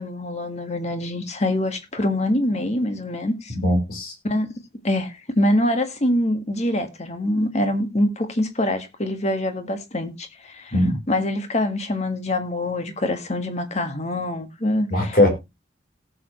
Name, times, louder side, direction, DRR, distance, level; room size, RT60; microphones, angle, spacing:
voice 1, 0.0-3.5 4.2-4.5 4.8-10.7 11.1-15.2, left 1 dB, 40° left, 1.8 m, -24 dB
voice 2, 3.6-4.1 10.7-11.0 14.9-15.3, left 1 dB, 55° left, 4.5 m, -19 dB
18.0 x 7.0 x 3.2 m
head